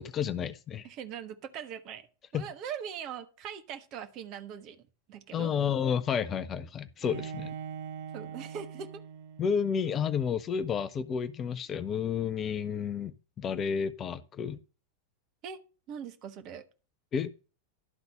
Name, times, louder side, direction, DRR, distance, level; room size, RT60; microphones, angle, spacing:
voice 1, 0.0-0.9 2.3-2.5 5.3-7.6 9.4-14.6 17.1-17.3, left 7 dB, 25° left, 0.6 m, -31 dB
voice 2, 0.8-2.1 2.3-5.5 8.1-8.9 15.4-15.6 15.9-16.6, right 8 dB, 40° right, 1.3 m, -41 dB
Bowed string instrument, 7.0-10.0, right 7 dB, 55° right, 0.9 m, -42 dB
12.0 x 4.0 x 6.6 m
figure-of-eight pair, 90°, 0 cm